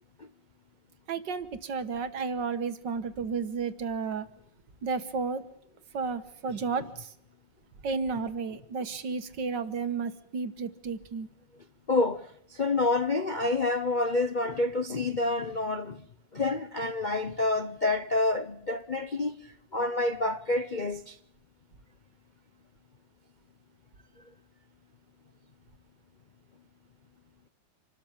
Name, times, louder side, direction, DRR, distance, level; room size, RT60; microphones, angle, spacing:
voice 1, 1.1-4.3 4.8-5.4 5.9-7.1 7.8-11.3, right 5 dB, 65° right, 2.0 m, -32 dB
voice 2, 11.9-16.1 16.3-21.2, left 2 dB, 40° left, 0.6 m, -28 dB
26.5 x 13.0 x 8.9 m
omnidirectional pair, 2.1 m